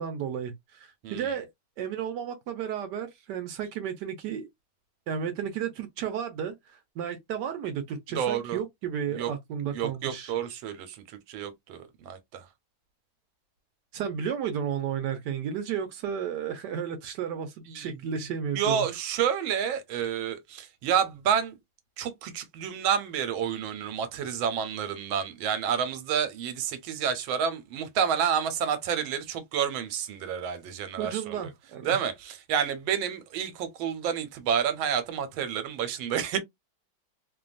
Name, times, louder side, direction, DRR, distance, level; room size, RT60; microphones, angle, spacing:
voice 1, 0.0-1.5 1.8-4.5 5.1-10.3 13.9-18.9 31.0-32.0, right 8 dB, 70° right, 1.0 m, -33 dB
voice 2, 8.1-8.6 9.1-9.3 9.7-12.4 17.7-17.9 18.6-21.6 22.0-31.4 31.8-36.4, right 8 dB, 90° right, 1.4 m, -29 dB
3.1 x 2.2 x 2.4 m
omnidirectional pair, 2.2 m